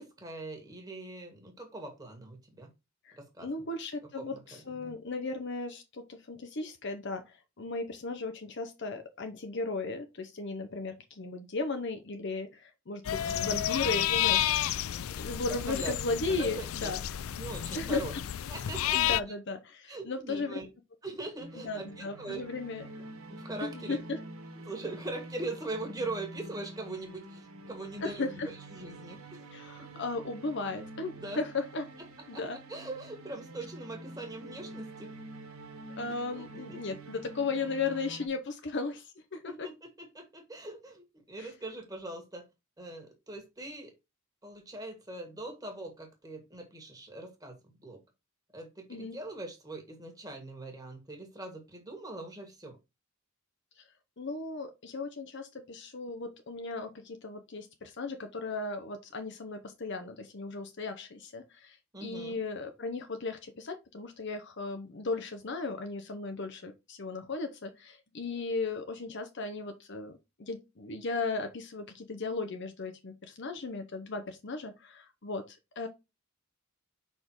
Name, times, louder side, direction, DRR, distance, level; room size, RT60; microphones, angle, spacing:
voice 1, 0.0-2.7 3.2-3.5 4.2-4.9 13.2-13.6 15.4-15.9 16.4-16.9 17.4-18.1 18.5-19.2 19.9-20.7 21.0-22.4 23.3-24.0 24.6-29.4 31.2-31.4 32.3-32.4 32.7-35.1 36.3-36.4 36.7-36.8 39.5-42.4 42.8-43.9 44.4-48.0 48.5-52.8 61.9-62.4, right 2 dB, 15° right, 1.7 m, -41 dB
voice 2, 3.1-14.5 15.2-17.0 17.7-18.2 18.9-20.6 21.5-22.8 23.6-24.2 28.0-28.5 29.5-31.9 32.3-32.6 36.0-39.7 41.4-41.5 48.9-49.2 53.8-53.9 54.2-75.9, left 3 dB, 55° left, 0.8 m, -36 dB
sound 1, 13.0-19.2, left 12 dB, 80° left, 0.4 m, -31 dB
sound 2, 21.4-38.3, right 1 dB, 90° right, 1.5 m, -47 dB
5.3 x 4.3 x 4.6 m
head